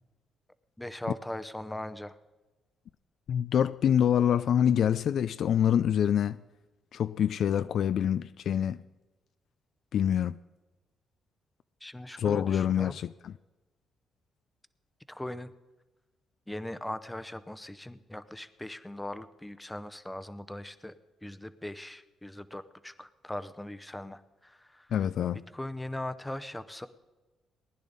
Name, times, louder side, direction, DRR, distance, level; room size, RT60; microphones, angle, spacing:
voice 1, 0.8-2.2 11.8-13.0 15.1-15.5 16.5-21.0 21.2-24.9 25.5-26.9, left 1 dB, 10° left, 0.7 m, -40 dB
voice 2, 3.3-6.4 6.9-8.8 9.9-10.4 12.2-13.3 24.9-25.4, left 9 dB, 65° left, 0.3 m, -26 dB
19.0 x 10.5 x 4.0 m
cardioid pair, 90°, 0 cm